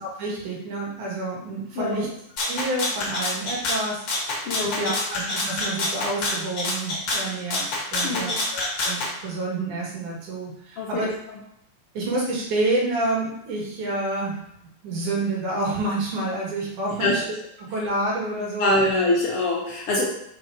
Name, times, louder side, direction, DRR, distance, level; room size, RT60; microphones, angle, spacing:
voice 1, 0.0-2.1 2.4-11.1 11.9-14.4 14.8-17.2 17.7-18.7, right 2 dB, 85° right, -3 dB, 3.3 m, -28 dB
voice 2, 1.8-2.1 4.5-5.0 8.0-8.4 10.8-11.1 16.9-17.2 18.6-20.1, left 2 dB, 65° left, -3 dB, 1.6 m, -24 dB
Rattle (instrument), 2.4-9.1, left 2 dB, 50° left, 1.6 m, -27 dB
5.6 x 4.7 x 4.6 m, 0.76 s
omnidirectional pair, 3.4 m